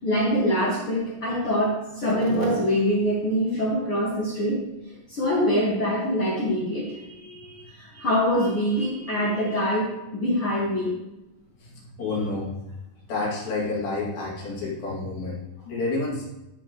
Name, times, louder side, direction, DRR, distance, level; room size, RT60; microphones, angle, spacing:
voice 1, 0.0-4.6 5.1-11.0, equal, 50° left, -7 dB, 1.9 m, -24 dB
voice 2, 11.6-12.5 13.1-15.4 15.7-16.2, left 3 dB, 80° left, -5 dB, 4.3 m, -29 dB
12.5 x 5.8 x 3.0 m, 0.95 s
omnidirectional pair, 4.2 m